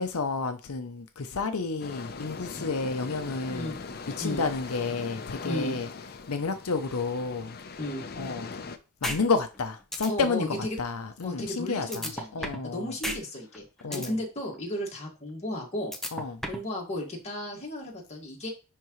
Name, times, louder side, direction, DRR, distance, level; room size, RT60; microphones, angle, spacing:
voice 1, 0.0-3.7 4.2-5.9 6.3-7.6 8.2-8.5 9.0-12.9 13.8-14.1 16.1-16.4, left 4 dB, 80° left, 0.7 m, -30 dB
sound 1, 1.8-8.8, left 4 dB, 45° left, 0.7 m, -41 dB
voice 2, 5.4-5.8 7.8-8.0 10.1-10.8 11.2-13.6 13.9-15.9 16.5-18.5, left 1 dB, 30° left, 2.0 m, -34 dB
sound 2, 9.0-9.2 9.5-9.6 9.9-10.1 11.9-12.7 13.0-13.2 13.5-14.1 15.9-16.7, equal, ahead, 1.0 m, -32 dB
10.5 x 3.7 x 3.1 m
head